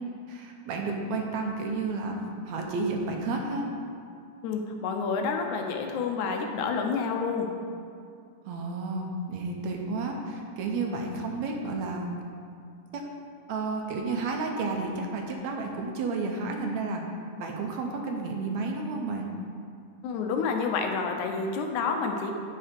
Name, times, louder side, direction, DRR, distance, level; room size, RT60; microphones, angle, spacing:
voice 1, 0.0-3.7 8.5-12.1 12.9-13.0 13.5-17.0 17.4-19.3, right 3 dB, 75° right, 2 dB, 1.9 m, -31 dB
voice 2, 4.4-7.5 20.0-22.3, left 5 dB, 80° left, 3 dB, 2.1 m, -29 dB
8.7 x 5.5 x 5.1 m, 2.3 s
omnidirectional pair, 3.4 m